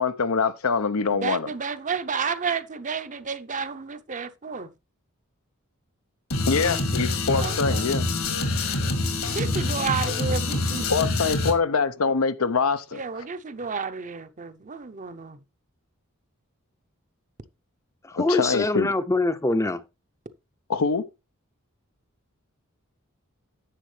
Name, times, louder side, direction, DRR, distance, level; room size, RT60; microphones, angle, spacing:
voice 1, 0.0-1.5 6.5-8.1 10.9-13.0 18.2-18.9 20.7-21.1, left 5 dB, 85° left, 0.8 m, -24 dB
voice 2, 1.1-4.7 7.3-7.9 9.3-10.9 12.9-15.4, right 5 dB, 35° right, 0.7 m, -31 dB
sound 1, 6.3-11.5, left 2 dB, 70° left, 1.9 m, -26 dB
voice 3, 18.0-19.8, left 2 dB, 15° left, 0.6 m, -24 dB
10.0 x 7.4 x 3.3 m
head